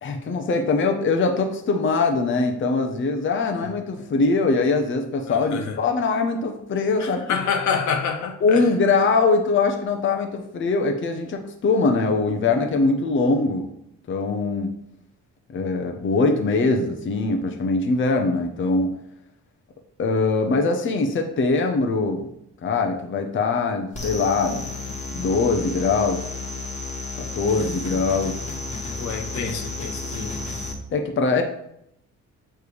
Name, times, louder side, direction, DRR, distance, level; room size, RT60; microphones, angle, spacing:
voice 1, 0.0-7.4 8.4-13.7 14.1-14.7 15.5-18.9 20.0-22.3 22.6-26.2 27.2-28.4 30.9-31.4, left 3 dB, 40° left, 4 dB, 0.8 m, -22 dB
voice 2, 5.3-5.8 7.0-8.7 29.0-30.3, left 6 dB, 70° left, 4 dB, 1.0 m, -27 dB
sound 1, 23.9-30.7, left 3 dB, 25° left, 1.4 m, -32 dB
6.7 x 3.3 x 4.8 m, 0.75 s
cardioid pair, 90°, 30 cm